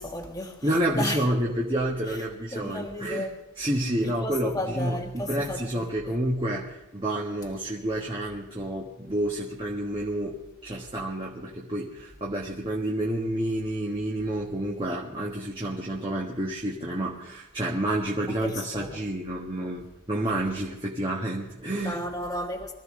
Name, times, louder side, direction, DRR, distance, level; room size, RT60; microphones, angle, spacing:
voice 1, 0.0-1.3 2.1-2.2 2.5-3.3 4.0-6.1 18.3-19.0 21.8-22.7, left 1 dB, 15° left, 1.6 m, -34 dB
voice 2, 0.6-3.3 3.6-10.4 10.6-22.0, right 1 dB, 25° right, 1.6 m, -29 dB
23.5 x 14.5 x 3.9 m
head